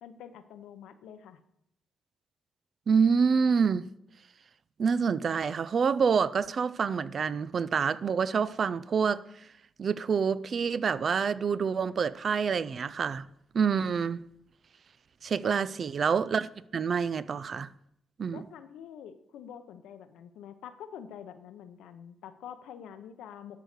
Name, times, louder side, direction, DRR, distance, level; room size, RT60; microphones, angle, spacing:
voice 1, 0.0-1.4 15.4-15.7 18.3-23.6, left 9 dB, 90° left, 0.8 m, -46 dB
voice 2, 2.9-3.9 4.8-9.2 9.8-13.3 13.5-14.2 15.2-17.7 18.2-18.5, right 6 dB, 45° right, 0.4 m, -27 dB
12.5 x 4.8 x 6.6 m
cardioid pair, 100°, 0 cm